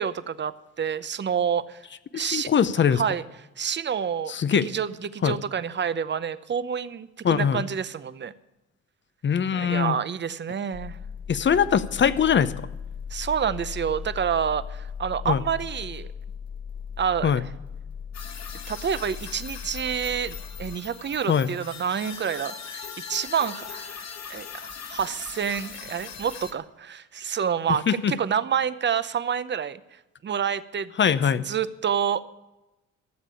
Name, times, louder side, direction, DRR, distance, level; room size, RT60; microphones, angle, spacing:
voice 1, 0.0-1.8 2.1-2.5 2.9-3.2 3.6-4.3 4.6-8.3 9.5-11.0 13.1-16.1 17.0-17.5 18.7-22.8 23.1-24.0 24.3-29.8 30.2-30.9 31.4-32.2, right 7 dB, 35° right, 14 dB, 0.7 m, -28 dB
voice 2, 2.1-3.0 4.3-4.7 5.2-5.4 7.2-7.6 9.2-10.0 11.3-12.5 15.3-15.4 17.2-17.4 21.3-21.5 27.9-28.1 31.0-31.4, left 7 dB, 40° left, 15 dB, 0.7 m, -22 dB
sound 1, 10.7-20.8, left 7 dB, 15° left, 1.1 m, -38 dB
sound 2, 18.1-26.5, left 6 dB, 60° left, 1.3 m, -40 dB
13.5 x 7.4 x 8.4 m, 1.0 s
cardioid pair, 90°, 30 cm